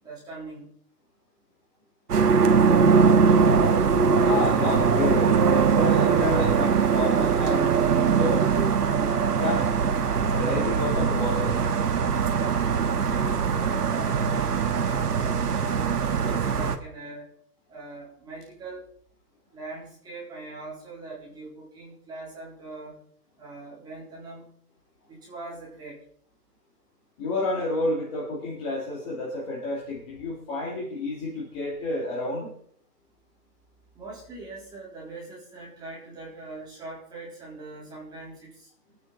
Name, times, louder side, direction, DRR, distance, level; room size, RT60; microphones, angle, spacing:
voice 1, 0.0-0.7 12.9-17.3 17.7-18.9 19.5-23.0 23.4-24.5 25.1-26.0 33.9-38.7, right 3 dB, 10° right, -5 dB, 3.6 m, -41 dB
sound 1, 2.1-16.8, right 6 dB, 75° right, 1.7 m, -21 dB
voice 2, 4.2-8.7 9.4-9.9 10.3-11.6 27.2-32.5, left 2 dB, 20° left, -4 dB, 2.4 m, -30 dB
22.5 x 9.2 x 4.0 m, 0.65 s
hypercardioid pair, 165°, 47 cm